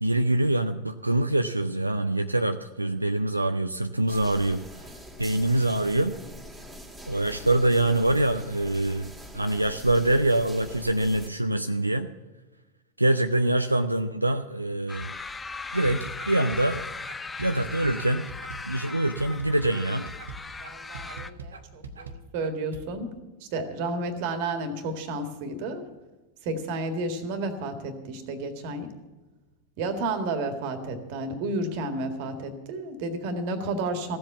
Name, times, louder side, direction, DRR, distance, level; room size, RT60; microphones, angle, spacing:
voice 1, 0.0-4.6 5.2-6.1 7.1-12.1 13.0-15.1 15.7-16.8 17.4-18.3 18.7-20.1, right 1 dB, 85° right, 7 dB, 0.5 m, -25 dB
sound 1, 4.1-11.3, equal, 10° right, 2.1 m, -44 dB
sound 2, 14.9-21.3, left 4 dB, 10° left, 0.6 m, -38 dB
sound 3, 15.7-22.8, right 3 dB, 70° right, 1.1 m, -41 dB
voice 2, 20.6-23.1 23.4-25.8 26.4-28.9 29.8-34.2, right 2 dB, 45° right, 7 dB, 1.8 m, -31 dB
15.5 x 7.8 x 8.2 m, 1.2 s
figure-of-eight pair, 90°, 0 cm